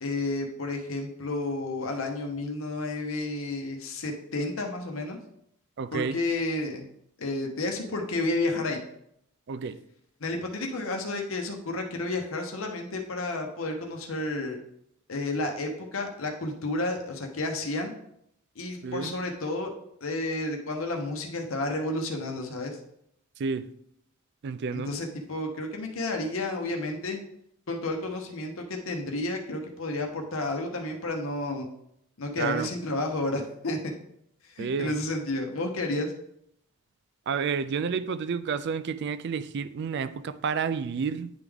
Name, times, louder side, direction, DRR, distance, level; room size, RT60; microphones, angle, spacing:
voice 1, 0.0-5.2 5.9-6.8 7.2-8.8 10.2-14.6 15.1-17.9 18.6-19.7 20.0-22.8 24.7-27.2 27.7-31.7 32.2-33.8 34.4-36.1, left 2 dB, 75° left, 0.9 m, -31 dB
voice 2, 5.8-6.2 9.5-9.8 18.8-19.1 23.4-23.7 24.4-24.9 32.4-32.7 34.6-34.9 37.3-41.3, right 5 dB, 55° right, 0.3 m, -30 dB
9.8 x 3.5 x 3.5 m
head